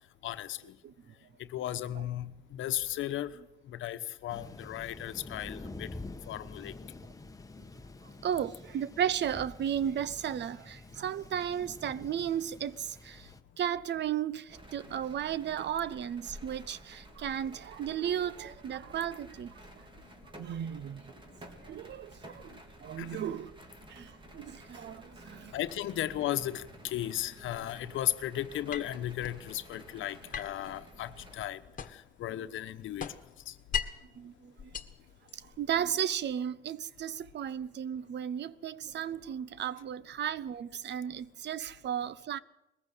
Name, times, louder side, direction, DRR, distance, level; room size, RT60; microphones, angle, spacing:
voice 1, 0.2-0.6 1.5-3.3 3.7-5.9 6.3-6.7 23.0-23.2 25.5-31.6 32.2-33.1 33.5-33.6, left 12 dB, 80° left, 1.1 m, -35 dB
voice 2, 0.8-1.1 1.9-2.0 8.2-13.3 13.6-19.5 20.4-21.1 21.6-23.6 23.9-25.6 34.2-34.7 35.3-42.4, right 9 dB, 60° right, 0.8 m, -35 dB
Thunder, 4.3-13.4, left 2 dB, 15° left, 1.3 m, -47 dB
sound 1, 14.5-31.5, right 1 dB, 25° right, 3.2 m, -52 dB
sound 2, 28.7-29.4 30.3-32.2 32.5-34.1 34.6-35.7, left 8 dB, 45° left, 1.6 m, -39 dB
21.0 x 15.0 x 8.3 m
cardioid pair, 90°, 20 cm